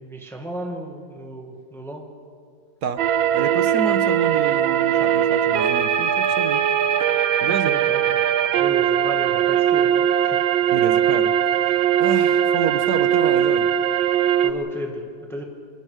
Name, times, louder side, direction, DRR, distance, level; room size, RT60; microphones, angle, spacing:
voice 1, 0.0-2.1 7.5-8.2 8.6-10.4 14.4-15.4, right 1 dB, ahead, 2 dB, 1.8 m, -34 dB
sound 1, 3.0-14.5, right 9 dB, 80° right, 1.6 m, -20 dB
voice 2, 3.3-6.6 7.4-7.7 10.7-11.3 11.6-11.7 12.0-13.7, right 6 dB, 60° right, 10 dB, 1.4 m, -28 dB
26.5 x 20.0 x 5.0 m, 2.1 s
omnidirectional pair, 2.1 m